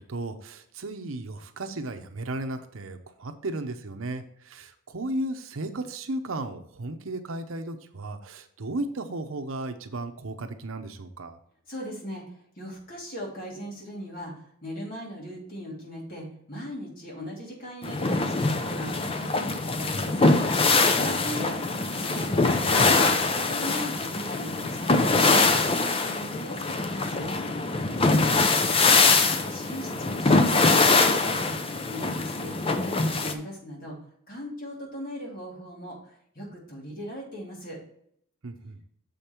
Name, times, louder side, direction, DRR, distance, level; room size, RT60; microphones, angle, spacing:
voice 1, 0.1-11.4 21.2-21.5 38.4-38.9, right 2 dB, 80° right, 8 dB, 0.8 m, -35 dB
voice 2, 11.7-12.2 12.6-20.3 20.9-21.6 21.9-25.2 25.5-27.4 29.3-31.6 31.9-34.0 34.3-36.0 36.3-37.8, equal, 45° left, -3 dB, 2.8 m, -38 dB
sound 1, 17.8-33.3, left 3 dB, 25° left, 0.5 m, -23 dB
7.0 x 5.2 x 4.4 m, 0.67 s
head